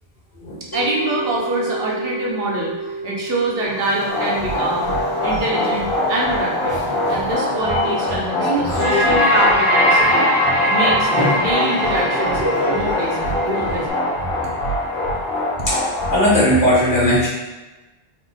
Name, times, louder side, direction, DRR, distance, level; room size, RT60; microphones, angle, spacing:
sound 1, 0.7-11.9, right 3 dB, 25° left, 0.7 m, -34 dB
voice 1, 0.7-4.9 5.2-6.8 7.1-10.3 10.6-12.4 12.7-14.0, right 1 dB, 75° right, -3 dB, 1.0 m, -25 dB
sound 2, 3.6-13.9, left 1 dB, 25° right, 0.7 m, -28 dB
sound 3, 4.1-16.3, left 1 dB, 80° left, 1.4 m, -21 dB
voice 2, 16.1-17.3, equal, 45° left, -7 dB, 1.4 m, -17 dB
4.1 x 2.4 x 3.4 m, 1.1 s
omnidirectional pair, 1.0 m